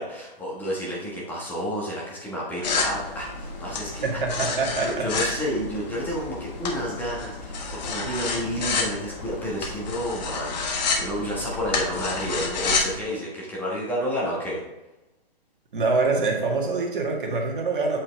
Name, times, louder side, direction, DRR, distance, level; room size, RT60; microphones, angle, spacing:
voice 1, 0.0-4.2 4.8-14.6, equal, 5° left, -5 dB, 1.3 m, -30 dB
sound 1, 2.6-13.0, left 4 dB, 45° left, 1.4 m, -30 dB
voice 2, 4.0-5.5 15.7-18.0, right 3 dB, 60° right, 1 dB, 1.8 m, -25 dB
8.5 x 4.6 x 3.4 m, 0.98 s
hypercardioid pair, 135°, 29 cm